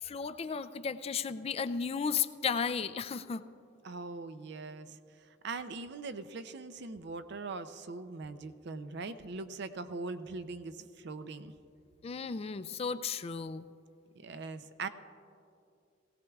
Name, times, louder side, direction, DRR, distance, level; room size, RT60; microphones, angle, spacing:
voice 1, 0.0-3.4 12.0-13.7, left 6 dB, 35° left, 12 dB, 0.3 m, -34 dB
voice 2, 3.8-5.0 5.4-11.5 14.2-14.9, right 3 dB, 65° right, 11 dB, 0.5 m, -41 dB
18.5 x 17.5 x 2.3 m, 2.5 s
head